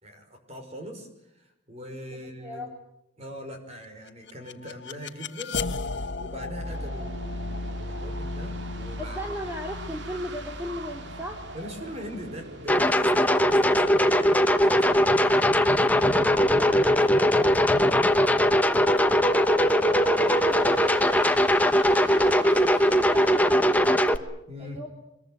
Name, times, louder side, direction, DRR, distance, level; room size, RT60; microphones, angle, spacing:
voice 1, 0.0-2.6 3.2-5.5 5.9-9.2 11.5-15.9 24.5-24.8, equal, 30° right, 5 dB, 5.5 m, -41 dB
voice 2, 2.1-2.7 9.0-11.5 16.4-24.1 24.6-24.9, equal, 10° right, 1 dB, 2.8 m, -38 dB
sound 1, 4.1-13.0, left 3 dB, 65° left, 1.3 m, -36 dB
sound 2, 6.6-23.7, right 2 dB, 65° right, 2.5 m, -42 dB
sound 3, 12.7-24.2, equal, 10° left, 1.1 m, -20 dB
24.5 x 22.0 x 9.3 m, 0.83 s
head